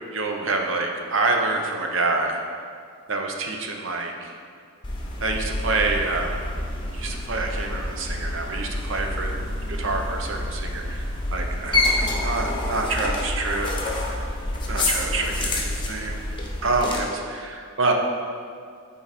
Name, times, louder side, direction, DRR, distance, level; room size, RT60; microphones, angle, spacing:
voice 1, 0.1-2.4 3.1-4.3 5.2-6.4 6.9-13.7 14.7-16.2 16.6-17.9, right 3 dB, 60° right, 2 dB, 0.8 m, -27 dB
sound 1, 4.8-17.0, left 1 dB, 20° left, 0.8 m, -28 dB
9.3 x 4.0 x 4.1 m, 2.2 s
head